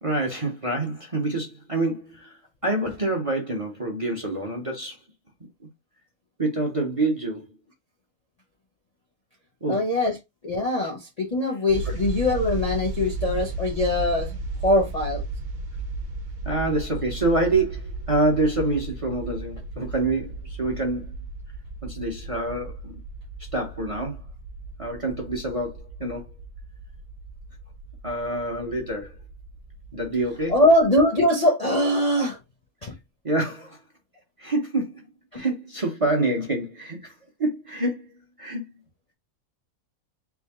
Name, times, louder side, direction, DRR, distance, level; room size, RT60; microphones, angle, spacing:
voice 1, 0.0-5.0 6.4-7.5 9.6-9.8 11.8-11.9 16.4-21.1 21.8-23.0 23.5-24.2 24.8-26.3 28.0-29.1 29.9-30.5 32.8-32.9 33.2-33.8 34.4-35.0 35.3-37.1 37.4-38.1 38.4-38.6, right 2 dB, 30° right, 0.7 m, -26 dB
voice 2, 9.7-10.1 10.4-15.2 30.5-32.4 32.8-32.9 35.3-35.4, left 1 dB, 40° left, 0.6 m, -22 dB
sound 1, 11.7-30.9, right 3 dB, 85° right, 1.2 m, -35 dB
3.5 x 2.5 x 3.4 m
omnidirectional pair, 1.5 m